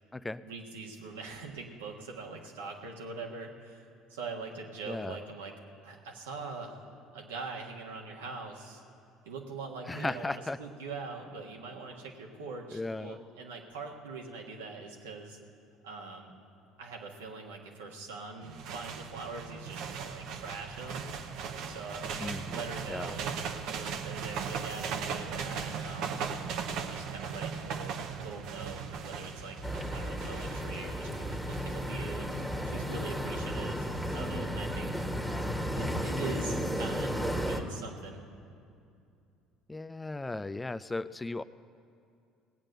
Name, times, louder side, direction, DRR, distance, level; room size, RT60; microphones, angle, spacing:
voice 1, 0.4-3.8 4.1-5.5 5.8-6.9 7.1-8.8 9.2-15.4 15.8-16.3 16.8-21.1 21.6-23.4 23.8-26.3 26.8-29.6 29.9-32.3 32.6-35.1 35.7-37.2 37.5-38.2, right 4 dB, 85° right, 1 dB, 1.6 m, -43 dB
voice 2, 4.9-5.2 9.9-10.6 12.7-13.2 22.2-23.2 35.3-35.5 39.7-41.4, left 2 dB, 15° left, 14 dB, 0.4 m, -36 dB
sound 1, 18.4-34.3, right 6 dB, 65° right, 0.9 m, -39 dB
sound 2, 29.6-37.6, equal, 10° right, 1.6 m, -34 dB
18.5 x 8.8 x 6.7 m, 2.5 s
hypercardioid pair, 65°, 0 cm